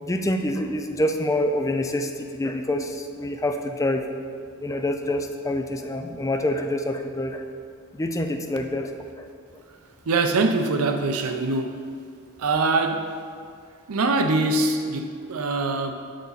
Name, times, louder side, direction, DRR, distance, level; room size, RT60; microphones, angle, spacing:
voice 1, 0.0-4.1 4.6-7.5 7.9-8.9 9.2-9.3, left 1 dB, 15° left, 5 dB, 0.4 m, -26 dB
voice 2, 10.1-11.8 12.4-13.1 13.9-15.9, right 3 dB, 85° right, 7 dB, 0.6 m, -23 dB
7.0 x 6.4 x 4.0 m, 2.2 s
head